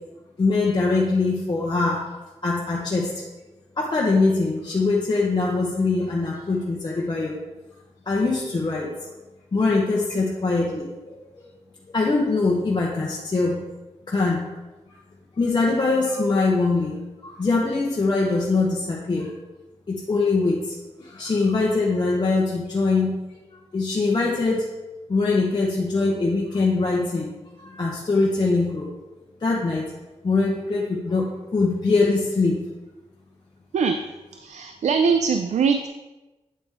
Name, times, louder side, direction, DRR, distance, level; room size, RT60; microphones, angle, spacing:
voice 1, 0.4-2.0 2.4-3.2 3.8-7.4 8.1-8.9 9.5-11.5 11.9-13.6 14.1-14.5 15.4-19.3 19.9-23.2 23.7-24.6 25.1-28.9 29.4-29.8 30.2-32.6, left 3 dB, 40° left, -4 dB, 0.9 m, -23 dB
voice 2, 34.4-35.9, right 5 dB, 85° right, 7 dB, 0.4 m, -22 dB
8.7 x 4.9 x 3.5 m, 1.1 s
wide cardioid pair, 105°, 12 cm